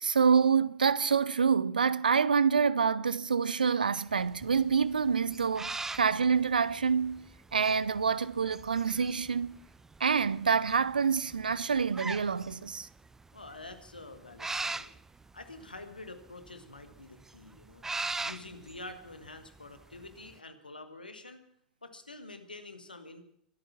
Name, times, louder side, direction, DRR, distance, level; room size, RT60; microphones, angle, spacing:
voice 1, 0.0-7.2 7.5-9.6 10.0-12.9, right 6 dB, 75° right, 0.6 m, -27 dB
sound 1, 4.1-20.3, right 3 dB, 10° right, 0.6 m, -41 dB
voice 2, 13.3-14.9 15.3-17.8 18.2-21.4 21.8-23.2, left 2 dB, 80° left, 1.9 m, -47 dB
22.5 x 9.1 x 5.9 m
figure-of-eight pair, 90°, 5 cm